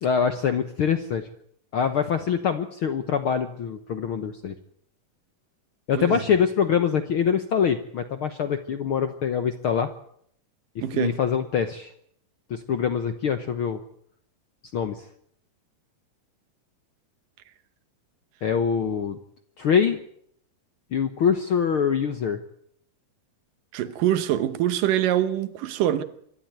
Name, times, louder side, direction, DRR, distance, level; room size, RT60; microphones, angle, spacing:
voice 1, 0.0-1.3 1.7-4.5 5.9-9.9 10.9-11.9 12.5-13.8 14.7-15.0 18.4-19.2 19.6-20.0 20.9-22.4, left 7 dB, 65° left, 1.4 m, -24 dB
voice 2, 10.8-11.2 23.7-26.0, right 11 dB, 80° right, 2.8 m, -24 dB
25.5 x 12.5 x 9.2 m
omnidirectional pair, 3.8 m